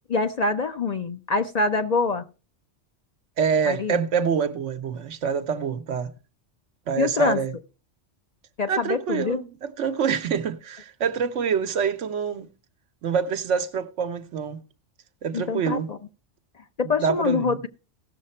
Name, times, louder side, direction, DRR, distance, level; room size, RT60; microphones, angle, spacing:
voice 1, 0.1-2.2 3.7-4.0 7.0-7.4 8.6-9.4 15.3-16.0 16.8-17.7, left 4 dB, 45° left, 0.5 m, -25 dB
voice 2, 3.4-6.1 6.9-7.5 8.7-12.5 13.0-14.6 15.2-15.9 16.8-17.6, right 6 dB, 85° right, 1.1 m, -26 dB
16.0 x 6.6 x 4.3 m
omnidirectional pair, 1.2 m